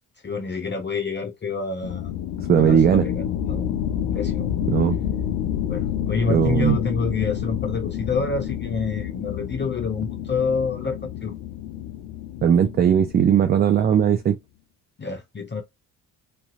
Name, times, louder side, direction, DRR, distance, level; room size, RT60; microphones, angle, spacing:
voice 1, 0.2-2.1 2.5-3.8 4.1-4.5 5.7-11.3 15.0-15.6, left 4 dB, 25° left, 0.7 m, -28 dB
sound 1, 1.8-14.1, left 10 dB, 65° left, 0.6 m, -29 dB
voice 2, 2.5-3.1 4.7-5.0 6.3-6.8 12.4-14.4, right 8 dB, 25° right, 0.3 m, -18 dB
3.2 x 2.7 x 2.5 m
hypercardioid pair, 45°, 44 cm